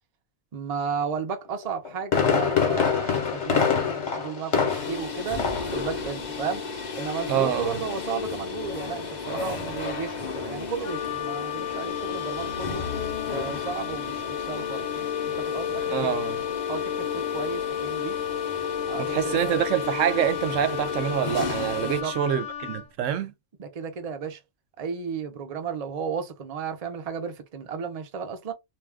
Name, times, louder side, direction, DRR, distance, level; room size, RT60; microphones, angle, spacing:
voice 1, 0.5-5.4 5.7-6.7 6.9-12.8 13.3-15.0 15.4-16.1 16.7-18.2 18.9-19.5 21.8-22.1 23.6-24.4 24.8-28.5, right 6 dB, 40° right, 0.6 m, -34 dB
Fireworks, 1.6-5.1 5.4-5.8 6.1-6.2, left 6 dB, 65° left, 1.2 m, -24 dB
the sound of plastic processing hall - front, 4.7-22.0, left 6 dB, 45° left, 0.7 m, -32 dB
voice 2, 7.3-7.8 15.9-16.4 19.0-23.3, right 10 dB, 80° right, 0.9 m, -26 dB
Wind instrument woodwind instrument, 10.8-22.9, left 10 dB, 90° left, 1.0 m, -36 dB
2.5 x 2.2 x 3.4 m
omnidirectional pair, 1.3 m